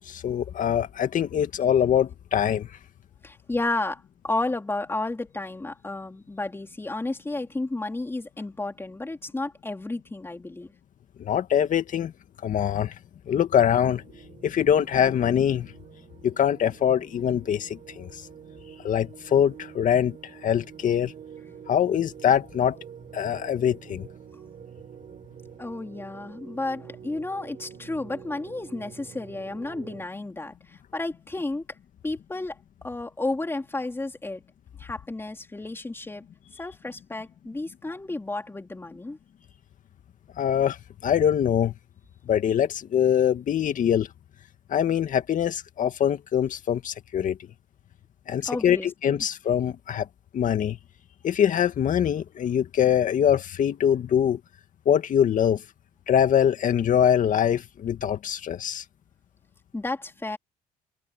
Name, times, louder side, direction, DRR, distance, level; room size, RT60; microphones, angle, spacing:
voice 1, 0.1-2.7 11.2-12.1 12.4-12.9 13.3-14.0 14.4-15.7 16.2-18.1 18.8-20.2 20.4-21.1 21.7-22.8 23.1-24.1 40.4-40.8 41.0-41.7 42.3-44.1 44.7-47.4 48.3-50.1 50.3-50.8 51.2-54.4 54.9-55.6 56.1-58.8, left 9 dB, 50° left, 2.1 m, -23 dB
voice 2, 3.2-10.7 25.6-31.6 32.0-32.6 32.8-34.4 34.8-36.2 36.6-39.2 48.5-49.2 59.7-60.4, left 2 dB, 15° left, 3.5 m, -32 dB
sound 1, 13.9-30.0, right 8 dB, 50° right, 5.3 m, -47 dB
cardioid pair, 105°, 16 cm